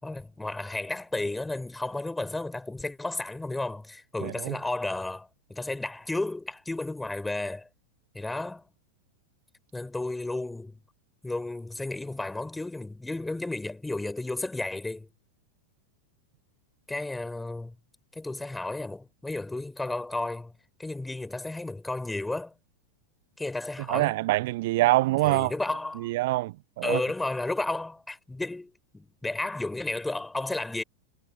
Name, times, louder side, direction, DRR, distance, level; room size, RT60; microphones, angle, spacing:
voice 1, 0.0-7.7 8.1-8.6 9.7-10.8 11.2-15.1 16.9-17.7 18.1-20.5 20.8-22.5 23.4-24.2 25.2-26.1 26.8-30.8, left 2 dB, 5° left, 5.2 m, -33 dB
voice 2, 4.2-4.5 23.9-25.5 26.0-27.0, right 19 dB, 50° right, 0.7 m, -25 dB
figure-of-eight pair, 90°, 0 cm